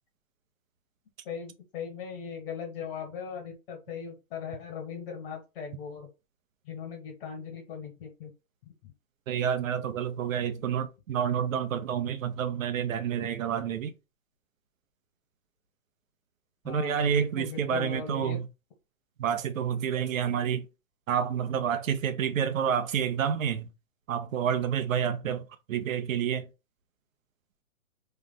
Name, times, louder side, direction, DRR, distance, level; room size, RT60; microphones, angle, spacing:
voice 1, 1.2-6.1 6.6-8.3 8.6-8.9 16.6-18.4, left 7 dB, 40° left, 1.7 m, -39 dB
voice 2, 9.3-13.9 16.6-18.5 19.2-20.7 21.1-23.7 24.1-25.4 25.7-26.5, right 8 dB, 70° right, 0.9 m, -29 dB
3.3 x 2.5 x 3.9 m
hypercardioid pair, 155°, 41 cm